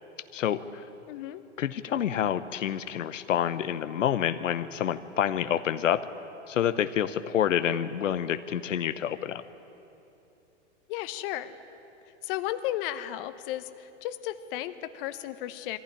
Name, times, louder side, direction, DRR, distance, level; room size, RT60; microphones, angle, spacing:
voice 1, 0.3-0.8 1.6-6.1 6.5-9.4, left 9 dB, 85° left, 11 dB, 0.9 m, -28 dB
voice 2, 1.1-1.4 10.9-11.6 12.2-15.8, left 13 dB, 50° left, 11 dB, 1.1 m, -34 dB
21.5 x 15.5 x 10.0 m, 3.0 s
hypercardioid pair, 130°, 37 cm